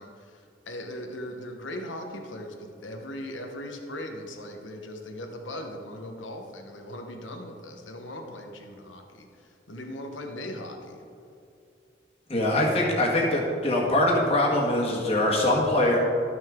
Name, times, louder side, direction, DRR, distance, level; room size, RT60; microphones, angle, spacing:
voice 1, 0.0-11.0, left 1 dB, 85° left, 3 dB, 1.1 m, -39 dB
voice 2, 12.3-16.0, left 1 dB, 30° left, -3 dB, 1.5 m, -23 dB
12.5 x 6.1 x 3.7 m, 2.5 s
head